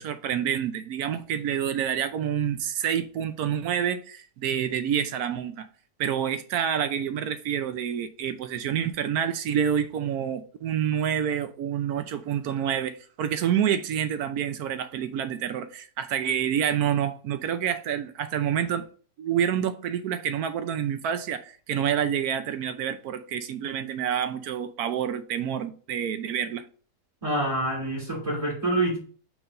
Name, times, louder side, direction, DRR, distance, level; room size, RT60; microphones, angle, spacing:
voice 1, 0.0-5.7 6.0-18.8 19.2-26.6, right 9 dB, 75° right, 1.1 m, -28 dB
voice 2, 27.2-29.0, right 1 dB, 20° right, 2.3 m, -26 dB
4.9 x 3.8 x 5.3 m
omnidirectional pair, 1.7 m